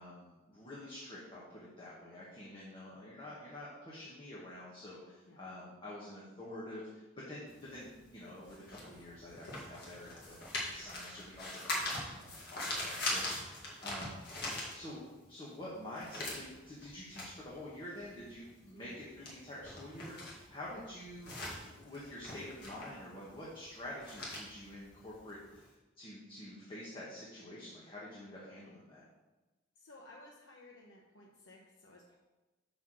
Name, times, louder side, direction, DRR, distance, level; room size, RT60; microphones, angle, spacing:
voice 1, 0.0-10.4 10.7-14.2 14.5-15.0 15.3-21.3 21.6-29.0, left 1 dB, 25° left, -7 dB, 1.3 m, -48 dB
sound 1, 7.5-15.3 15.6-25.7, left 1 dB, 60° left, 1.9 m, -42 dB
voice 2, 18.7-19.0 29.8-32.2, left 1 dB, 80° left, -2 dB, 0.8 m, -57 dB
5.8 x 4.3 x 6.2 m, 1.1 s
head